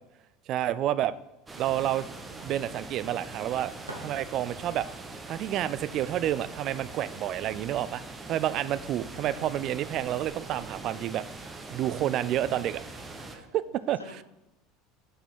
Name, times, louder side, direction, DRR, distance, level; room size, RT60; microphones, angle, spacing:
voice 1, 0.5-1.1 1.6-2.0 2.4-3.7 4.0-4.9 5.3-8.0 8.3-11.2 11.7-12.8 13.3-14.0, right 12 dB, 45° right, 16 dB, 0.3 m, -29 dB
sound 1, 1.5-13.4, right 3 dB, 20° right, 0.9 m, -42 dB
sound 2, 3.8-4.8, right 1 dB, 90° right, 1.1 m, -46 dB
voice 2, 9.1-9.7 13.0-14.2, left 2 dB, 85° left, 6 dB, 0.7 m, -51 dB
6.0 x 5.5 x 4.5 m, 0.97 s
figure-of-eight pair, 70°, 0 cm